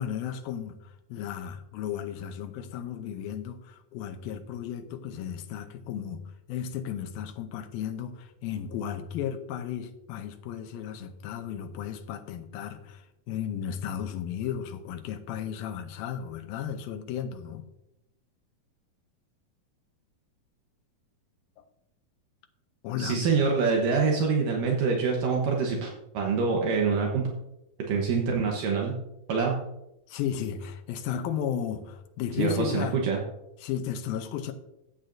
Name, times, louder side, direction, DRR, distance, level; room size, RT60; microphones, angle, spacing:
voice 1, 0.0-6.2 6.5-17.6 22.8-23.2 30.1-33.0 33.6-34.5, left 8 dB, 85° left, 7 dB, 2.6 m, -34 dB
voice 2, 23.0-27.3 27.9-28.9 29.3-29.5 32.4-33.2, right 5 dB, 70° right, 0 dB, 2.6 m, -25 dB
15.5 x 8.2 x 2.6 m, 0.87 s
omnidirectional pair, 4.1 m